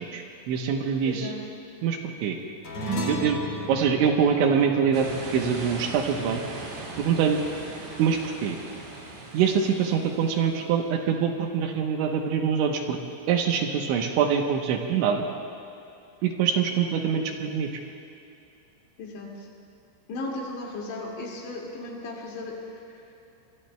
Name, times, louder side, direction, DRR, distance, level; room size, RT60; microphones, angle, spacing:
voice 1, 0.0-1.3 1.8-2.4 3.1-3.4 3.7-6.4 7.0-7.4 8.0-8.6 9.3-13.0 13.3-15.2 16.2-17.8, right 7 dB, 75° right, 3 dB, 3.2 m, -24 dB
voice 2, 1.1-1.4 19.0-19.5 20.1-23.1, left 2 dB, 65° left, -3 dB, 4.3 m, -36 dB
sound 1, 2.6-7.3, equal, 40° left, 2.2 m, -35 dB
sound 2, 4.9-10.8, right 2 dB, 60° right, 4.0 m, -40 dB
25.0 x 23.5 x 2.2 m, 2.9 s
omnidirectional pair, 5.7 m